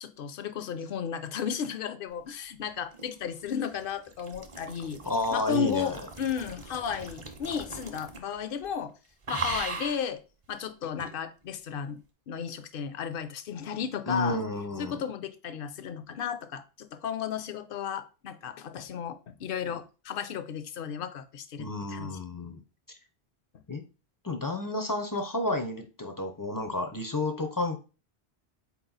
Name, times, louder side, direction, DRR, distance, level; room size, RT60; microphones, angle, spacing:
voice 1, 0.0-5.0 5.3-8.9 9.3-10.2 10.5-12.0 12.3-14.4 14.8-22.1, left 7 dB, 65° left, 11 dB, 0.7 m, -34 dB
sound 1, 2.6-8.4 8.6-8.9 9.2-10.1 11.0-11.1, right 3 dB, 35° right, 0.6 m, -39 dB
voice 2, 5.0-6.0 14.1-15.0 21.6-22.6 22.9-23.0 23.7-23.8 24.2-27.8, left 2 dB, 30° left, 5 dB, 0.4 m, -31 dB
4.1 x 3.0 x 3.9 m, 0.33 s
omnidirectional pair, 1.1 m